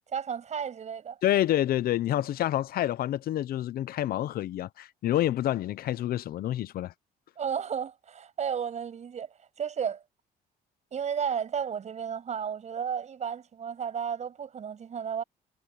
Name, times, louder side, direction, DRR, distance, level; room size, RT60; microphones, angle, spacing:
voice 1, 0.1-1.2 7.4-10.0 10.9-15.2, right 7 dB, 45° right, 7.0 m, -33 dB
voice 2, 1.2-6.9, left 13 dB, 60° left, 0.8 m, -28 dB
cardioid pair, 110°, 17 cm